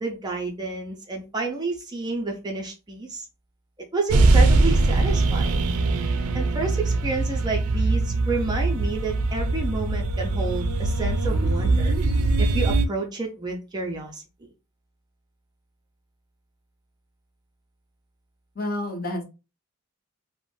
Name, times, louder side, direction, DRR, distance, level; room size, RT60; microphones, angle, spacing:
voice 1, 0.0-3.3 3.9-5.6 6.3-12.0 12.4-14.2, right 3 dB, 20° right, 1 dB, 0.4 m, -30 dB
sound 1, 4.1-12.8, right 2 dB, 85° right, 0.4 m, -22 dB
voice 2, 18.5-19.2, left 1 dB, 40° left, 3 dB, 0.7 m, -29 dB
2.5 x 2.1 x 3.1 m, 0.29 s
head